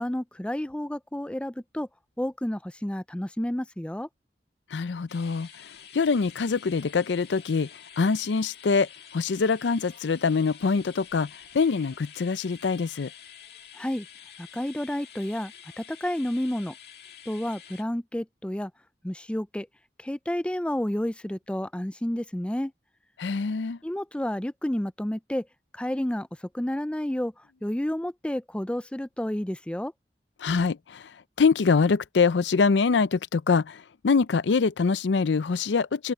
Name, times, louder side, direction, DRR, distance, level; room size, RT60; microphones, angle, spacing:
voice 1, 0.0-1.9 2.2-4.1 13.7-14.1 14.4-16.8 17.3-18.7 19.0-19.7 20.0-22.7 23.8-25.5 25.7-29.9, left 1 dB, 5° left, 0.4 m, -30 dB
voice 2, 4.7-5.7 5.9-7.7 8.0-13.1 23.2-23.8 30.4-36.1, left 5 dB, 90° left, 0.5 m, -24 dB
sound 1, 5.1-17.8, left 8 dB, 60° left, 2.3 m, -48 dB
open air
head